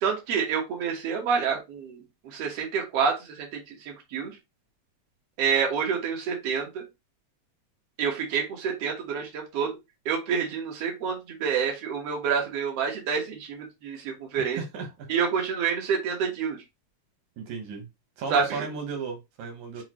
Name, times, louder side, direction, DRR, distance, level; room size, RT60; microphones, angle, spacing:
voice 1, 0.0-4.4 5.4-6.8 8.0-9.8 10.1-14.6 15.1-16.6 18.3-18.7, right 6 dB, 60° right, 2.2 m, -28 dB
voice 2, 14.6-15.1 17.4-17.9 18.2-19.8, right 5 dB, 85° right, 2.6 m, -35 dB
6.5 x 2.4 x 3.0 m
omnidirectional pair, 3.3 m